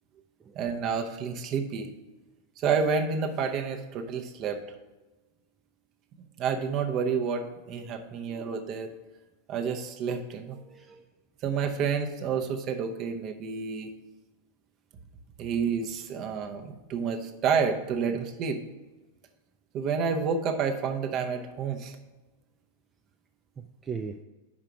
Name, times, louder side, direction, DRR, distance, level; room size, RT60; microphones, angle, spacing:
voice 1, 0.5-1.9 2.6-4.8 6.4-8.9 9.5-10.6 11.4-13.9 15.4-18.6 19.7-22.0, right 6 dB, 35° right, 5 dB, 0.8 m, -29 dB
voice 2, 10.5-11.1 18.0-18.2 23.6-24.2, right 5 dB, 20° right, 6 dB, 0.3 m, -40 dB
5.6 x 4.9 x 6.1 m, 1.2 s
figure-of-eight pair, 90°, 0 cm